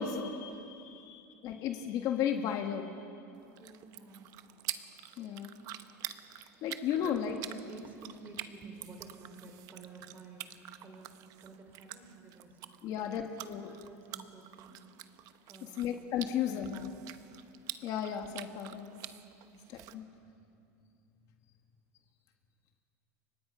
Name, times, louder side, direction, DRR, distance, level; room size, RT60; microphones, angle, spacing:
voice 1, 0.0-2.9 5.2-5.6 6.6-7.3 12.8-13.7 15.8-16.9 17.8-19.0 19.7-20.0, left 8 dB, 45° left, 5 dB, 1.6 m, -34 dB
sound 1, 3.3-19.9, right 13 dB, 45° right, 1.0 m, -47 dB
voice 2, 3.6-4.4 6.9-10.5 10.8-12.6 12.8-13.0 13.4-14.7 15.5-15.9 16.4-16.9 19.4-19.6, right 2 dB, 20° right, 3 dB, 4.2 m, -51 dB
30.0 x 24.5 x 5.6 m, 2.5 s
supercardioid pair, 150°, 9 cm